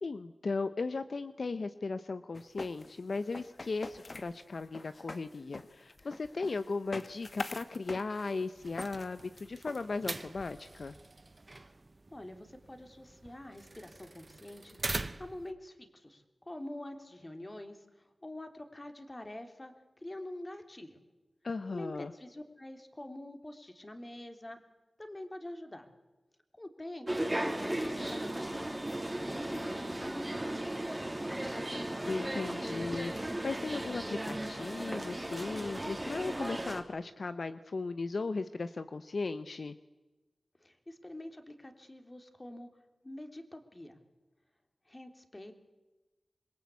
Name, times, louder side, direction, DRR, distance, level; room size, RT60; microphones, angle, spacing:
voice 1, 0.0-10.9 21.4-22.1 32.1-39.7, left 3 dB, 65° left, 11 dB, 0.8 m, -37 dB
sound 1, 2.3-10.5, left 2 dB, 45° left, 1.5 m, -45 dB
sound 2, 8.5-15.5, right 2 dB, 35° right, 1.0 m, -43 dB
voice 2, 12.1-19.7 20.0-21.0 21.7-24.6 25.0-25.9 26.6-30.7 40.6-42.7 43.0-44.0 44.9-45.5, left 1 dB, 25° left, 6 dB, 3.3 m, -46 dB
sound 3, 27.1-36.8, right 1 dB, 15° right, 3.0 m, -36 dB
26.5 x 22.0 x 8.4 m, 1.1 s
wide cardioid pair, 75°, 0 cm